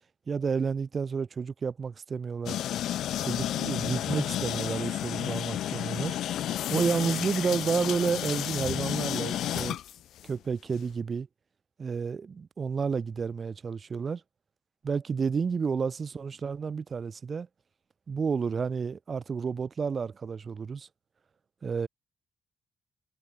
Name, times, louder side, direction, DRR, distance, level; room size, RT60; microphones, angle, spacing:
voice 1, 0.3-2.6 3.2-6.1 6.7-9.8 10.2-11.3 11.8-14.2 14.8-17.5 18.1-20.9 21.6-21.9, right 5 dB, 40° right, 0.6 m, -30 dB
sound 1, 2.5-10.3, left 12 dB, 80° left, 1.1 m, -31 dB
cardioid pair, 110°, 0 cm